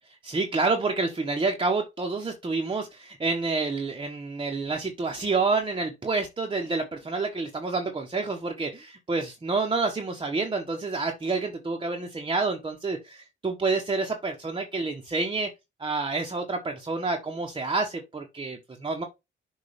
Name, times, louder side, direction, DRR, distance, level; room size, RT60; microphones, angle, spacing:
voice 1, 0.2-15.5 15.8-19.0, right 3 dB, 25° right, 1.3 m, -28 dB
6.9 x 2.8 x 5.1 m
cardioid pair, 90°, 20 cm